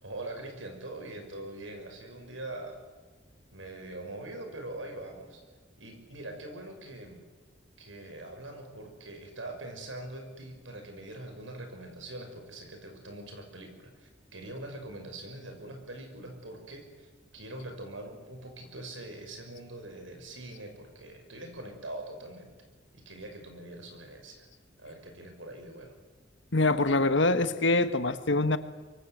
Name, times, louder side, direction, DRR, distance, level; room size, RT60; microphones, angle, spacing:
voice 1, 0.0-2.8 3.5-5.4 5.8-7.2 7.8-22.5 22.9-24.5 24.8-26.0, right 1 dB, 80° right, 4 dB, 6.2 m, -43 dB
voice 2, 26.5-28.6, left 2 dB, 70° left, 11 dB, 1.5 m, -24 dB
25.0 x 23.5 x 8.1 m, 1.4 s
head